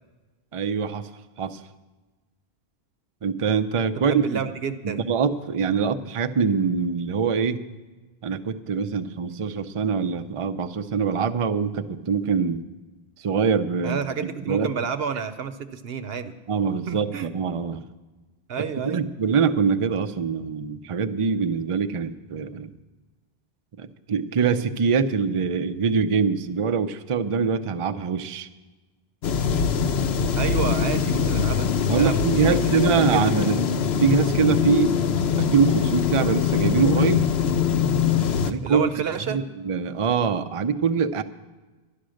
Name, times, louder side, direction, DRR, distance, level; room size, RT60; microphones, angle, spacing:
voice 1, 0.5-1.1 1.4-1.6 3.2-4.4 4.8-7.6 8.2-12.6 13.2-14.0 14.5-14.7 16.5-17.8 18.8-22.7 23.8-28.5 31.9-33.6 34.0-35.0 35.4-37.3 38.4-38.8 39.3-41.2, right 6 dB, 40° right, 9 dB, 0.5 m, -24 dB
voice 2, 4.0-5.0 13.8-16.3 16.9-17.3 18.5-19.0 30.4-31.7 31.9-32.7 33.1-33.7 38.6-39.4, right 6 dB, 75° right, 9 dB, 1.0 m, -30 dB
sound 1, 29.2-38.5, left 7 dB, 85° left, 1.0 m, -23 dB
11.5 x 11.5 x 6.3 m, 1.2 s
omnidirectional pair, 1.0 m